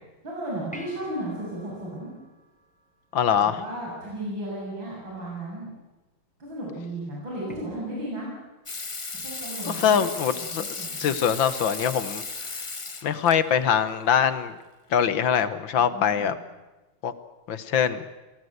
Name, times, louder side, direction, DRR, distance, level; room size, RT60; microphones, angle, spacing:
voice 1, 0.2-2.1 3.4-5.7 6.4-8.3 9.1-10.0 10.3-11.2 15.7-16.3, right 1 dB, 65° right, -4 dB, 8.1 m, -35 dB
sound 1, 0.7-3.4 7.5-7.6, right 1 dB, 5° left, 2.0 m, -47 dB
voice 2, 3.1-3.6 9.7-12.2 13.0-14.5 14.9-16.3 17.0-17.1 17.5-18.1, left 8 dB, 70° left, 13 dB, 1.9 m, -23 dB
Water tap faucet / Sink (filling or washing), 8.7-13.4 14.9-15.0, left 3 dB, 30° left, 0.5 m, -35 dB
28.0 x 18.5 x 8.1 m, 1.1 s
omnidirectional pair, 2.3 m